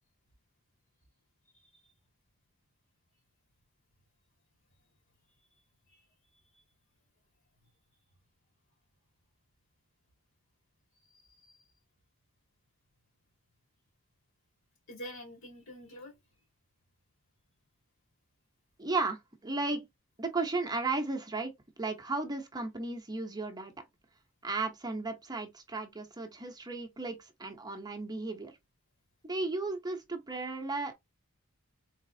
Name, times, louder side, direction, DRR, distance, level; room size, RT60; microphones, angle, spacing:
voice 1, 11.1-11.6 14.9-16.1, equal, 65° left, 2.3 m, -47 dB
voice 2, 18.8-19.8 20.2-23.7 24.4-28.6 29.2-30.9, right 3 dB, 20° right, 0.8 m, -35 dB
4.0 x 3.6 x 2.7 m
head